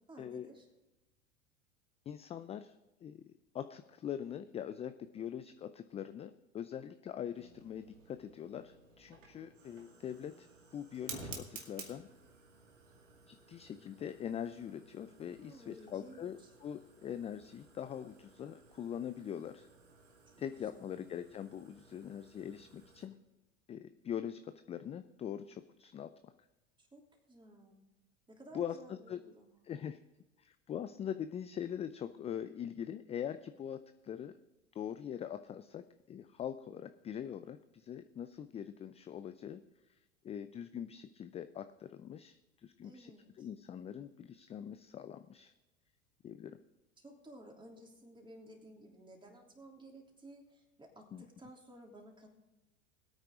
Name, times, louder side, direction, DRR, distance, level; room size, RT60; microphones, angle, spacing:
voice 1, 0.1-0.7 15.2-16.5 20.3-21.0 26.8-27.8 28.3-29.6 42.8-43.5 47.0-52.3, right 1 dB, 15° right, 1 dB, 3.2 m, -55 dB
voice 2, 2.1-2.8 3.0-3.2 3.5-10.5 10.7-12.1 13.3-19.7 20.4-23.1 23.7-26.3 28.5-29.2 29.6-30.0 30.4-34.3 34.7-39.6 39.9-40.0 40.2-43.1 43.4-45.5 46.2-46.6 51.1-51.2, left 9 dB, 15° left, 11 dB, 0.4 m, -43 dB
Fire, 7.3-23.1, right 4 dB, 80° right, 2.3 m, -54 dB
21.0 x 8.9 x 3.7 m, 1.0 s
hypercardioid pair, 85°, 37 cm